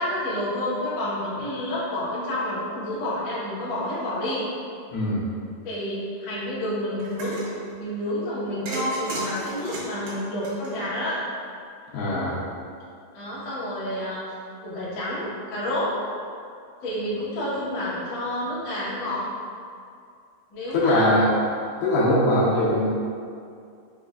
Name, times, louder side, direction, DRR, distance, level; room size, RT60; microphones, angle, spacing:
voice 1, 0.0-4.4 5.6-7.4 7.8-11.2 13.1-14.2 14.6-16.0 16.8-19.2 20.5-21.1, left 1 dB, 65° left, -10 dB, 1.7 m, -29 dB
voice 2, 4.9-5.2 11.9-12.4 20.7-21.3 21.8-22.9, left 1 dB, 80° left, -6 dB, 2.6 m, -21 dB
sound 1, 7.0-7.5 8.7-11.2, right 2 dB, 85° right, 2.8 m, -35 dB
6.2 x 2.5 x 2.3 m, 2.4 s
omnidirectional pair, 4.4 m